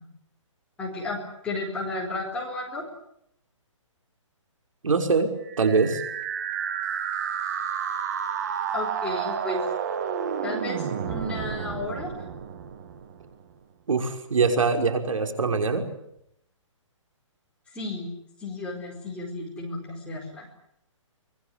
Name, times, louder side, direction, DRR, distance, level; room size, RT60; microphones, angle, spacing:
voice 1, 0.8-2.8 8.7-9.6 10.4-12.1 17.7-18.1 18.4-20.5, left 2 dB, 5° left, -3 dB, 4.8 m, -33 dB
voice 2, 4.8-6.0 13.9-15.9, right 4 dB, 80° right, 5 dB, 5.7 m, -23 dB
sound 1, 5.5-13.4, right 8 dB, 35° right, 2.1 m, -31 dB
25.0 x 20.5 x 9.9 m, 0.76 s
hypercardioid pair, 170°, 16 cm